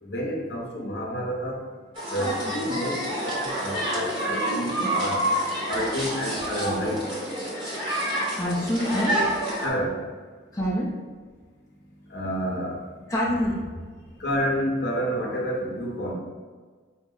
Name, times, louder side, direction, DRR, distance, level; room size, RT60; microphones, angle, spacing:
voice 1, 0.0-1.6 2.1-5.3 5.6-7.1 9.6-10.0 12.1-12.8 14.2-16.1, equal, 55° left, -2 dB, 0.7 m, -29 dB
sound 1, 2.0-9.7, equal, 25° right, 0.9 m, -28 dB
voice 2, 8.4-9.3 10.5-10.9 13.1-13.6, equal, 15° left, -6 dB, 0.5 m, -25 dB
4.2 x 2.0 x 3.6 m, 1.5 s
head